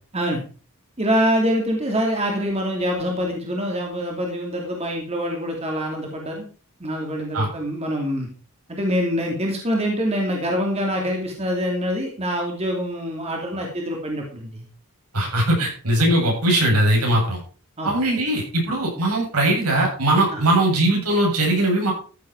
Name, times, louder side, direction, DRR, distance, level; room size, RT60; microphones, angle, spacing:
voice 1, 1.0-6.5 6.8-8.3 8.7-14.7 17.8-17.9 20.3-20.4, equal, 30° right, 0 dB, 2.7 m, -25 dB
voice 2, 15.1-17.4 17.8-21.9, right 1 dB, 85° right, -1 dB, 7.9 m, -20 dB
14.0 x 8.5 x 4.7 m, 0.38 s
head